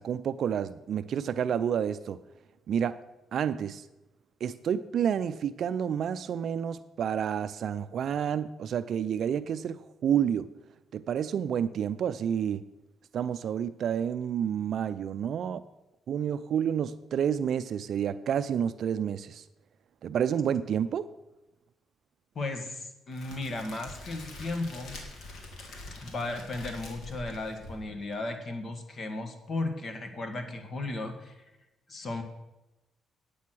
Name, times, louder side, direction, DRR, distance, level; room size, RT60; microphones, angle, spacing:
voice 1, 0.0-2.2 2.7-3.0 3.3-3.9 4.4-10.5 10.9-12.6 13.1-15.6 16.1-19.4 20.0-21.1, right 8 dB, 65° right, 12 dB, 0.4 m, -29 dB
voice 2, 22.4-25.0 26.0-31.4 31.9-32.2, left 2 dB, 45° left, 7 dB, 1.8 m, -35 dB
Crackle, 23.1-28.2, left 2 dB, 70° left, 2.6 m, -45 dB
9.6 x 8.4 x 6.1 m, 0.99 s
cardioid pair, 90°, 0 cm